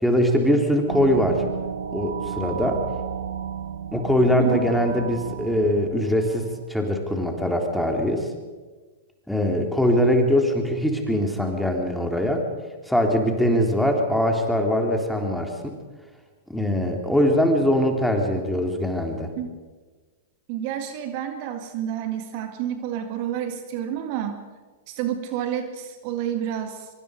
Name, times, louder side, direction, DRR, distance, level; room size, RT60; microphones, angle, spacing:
voice 1, 0.0-1.4 1.9-2.8 3.9-8.3 9.3-12.4 12.9-15.7 16.5-19.3, equal, ahead, 2 dB, 3.5 m, -22 dB
sound 1, 0.9-6.7, right 8 dB, 70° right, 1.3 m, -33 dB
voice 2, 20.5-24.4 24.9-26.9, right 10 dB, 50° right, 7 dB, 2.0 m, -29 dB
24.0 x 24.0 x 5.1 m, 1.4 s
figure-of-eight pair, 105°, 0 cm